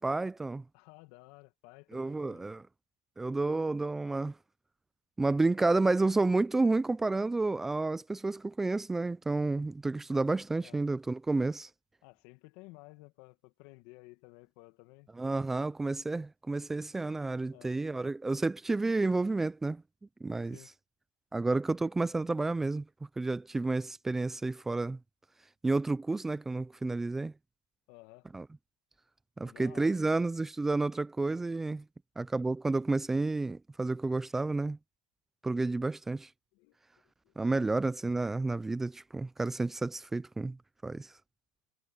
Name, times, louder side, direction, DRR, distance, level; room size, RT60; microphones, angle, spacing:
voice 1, 0.0-0.6 1.9-2.6 3.2-4.3 5.2-11.7 15.2-19.8 20.2-20.6 21.3-22.8 23.2-25.0 25.6-27.3 28.3-28.4 29.4-31.8 32.2-34.8 35.4-36.3 37.4-40.6 40.8-41.1, right 3 dB, 10° right, 0.4 m, -30 dB
voice 2, 0.7-2.5 5.5-5.8 10.6-10.8 12.0-15.7 17.5-17.8 20.5-20.7 27.9-28.3 29.4-30.2 36.5-36.8 37.2-37.7, left 23 dB, 65° left, 1.8 m, -55 dB
supercardioid pair, 120°, 3 cm